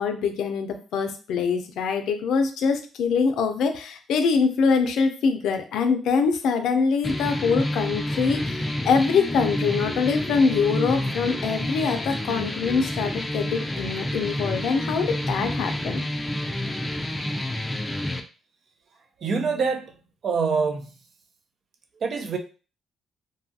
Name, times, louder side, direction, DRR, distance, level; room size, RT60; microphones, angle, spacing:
voice 1, 0.0-16.0, left 5 dB, 80° left, 7 dB, 0.4 m, -24 dB
sound 1, 7.0-18.2, left 1 dB, 15° left, 0.4 m, -29 dB
voice 2, 19.2-20.9 22.0-22.4, right 5 dB, 55° right, 6 dB, 0.5 m, -25 dB
2.6 x 2.3 x 2.6 m, 0.35 s
cardioid pair, 90°, 0 cm